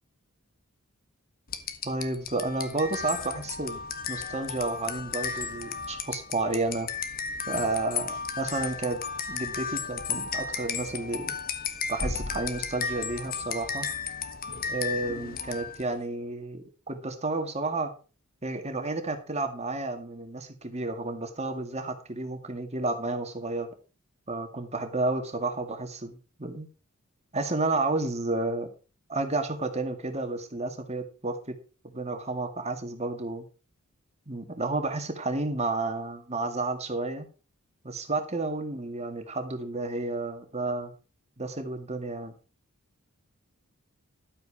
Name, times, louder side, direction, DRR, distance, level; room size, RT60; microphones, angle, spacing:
sound 1, 1.5-15.9, left 6 dB, 40° left, 1.4 m, -34 dB
voice 1, 1.8-3.8 4.1-6.9 7.5-9.0 9.3-11.4 11.9-13.9 14.7-17.9 18.4-23.7 24.3-26.7 27.3-28.7 29.1-31.6 31.9-33.5 34.3-37.3 37.8-40.9 41.4-42.3, right 2 dB, 30° right, 6 dB, 2.0 m, -31 dB
12.5 x 8.2 x 4.9 m, 0.34 s
head